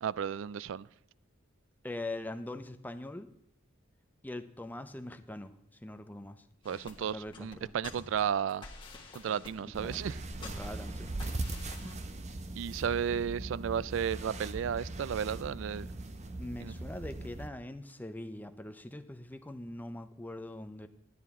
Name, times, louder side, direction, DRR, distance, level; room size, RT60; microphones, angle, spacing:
voice 1, 0.0-0.9 6.6-8.7 9.1-10.2 12.6-15.9 16.6-16.7, right 8 dB, 65° right, 22 dB, 0.3 m, -33 dB
voice 2, 1.8-3.3 4.2-6.4 7.0-7.7 9.8-10.0 10.4-11.1 16.4-20.9, left 1 dB, 10° left, 9 dB, 0.6 m, -42 dB
sound 1, 6.6-11.9, left 3 dB, 25° left, 1.6 m, -49 dB
sound 2, 9.7-17.5, right 2 dB, 35° right, 0.7 m, -40 dB
12.5 x 9.4 x 3.6 m, 0.78 s
head